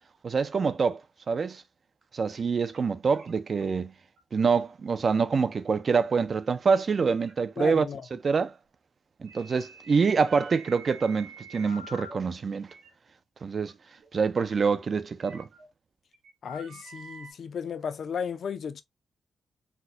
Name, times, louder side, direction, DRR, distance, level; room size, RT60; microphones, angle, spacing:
voice 1, 0.2-1.0 1.3-1.6 2.1-3.9 4.3-7.9 8.2-8.5 9.2-12.7 13.4-13.7 14.1-15.5, right 5 dB, 35° right, 0.3 m, -26 dB
sound 1, 2.3-2.4 2.7-2.8 3.1-3.6 4.2-4.4 4.9-5.0 6.5-6.6 7.0-7.3 7.8-7.9 9.2-12.2 12.6-12.9 13.7-13.8 14.0-14.1 15.2-15.7 16.1-17.3, right 2 dB, 55° right, 0.8 m, -47 dB
voice 2, 7.6-8.1 16.4-18.8, left 7 dB, 50° left, 0.4 m, -34 dB
4.1 x 2.1 x 2.6 m
wide cardioid pair, 165°, 0 cm